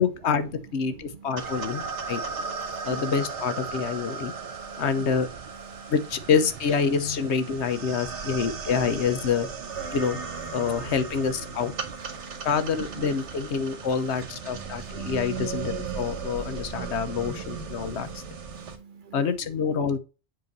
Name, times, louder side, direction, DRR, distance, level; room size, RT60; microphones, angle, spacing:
voice 1, 0.0-2.2 2.8-4.3 4.8-5.3 5.9-9.5 9.9-10.2 10.5-11.7 12.4-18.1 19.1-20.0, left 6 dB, 75° left, 1.1 m, -27 dB
sound 1, 1.4-18.8, right 5 dB, 85° right, 1.3 m, -36 dB
voice 2, 1.7-3.1 4.0-4.8 5.7-5.9 12.1-12.5 14.6-15.1 15.9-19.3, right 7 dB, 55° right, 0.7 m, -47 dB
Guitar, 6.7-7.5, left 7 dB, 55° left, 1.4 m, -37 dB
7.7 x 3.1 x 5.3 m
omnidirectional pair, 1.2 m